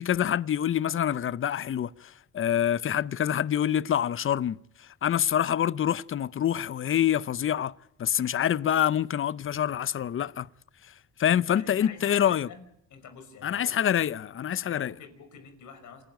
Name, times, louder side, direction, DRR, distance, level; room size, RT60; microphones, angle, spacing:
voice 1, 0.0-4.6 5.0-7.7 8.0-10.5 11.2-12.5 13.4-14.9, left 10 dB, 45° left, 0.7 m, -26 dB
voice 2, 11.3-12.6 12.9-14.2 14.6-16.0, left 6 dB, 75° left, 5.7 m, -47 dB
28.0 x 12.0 x 9.2 m
cardioid pair, 90°, 30 cm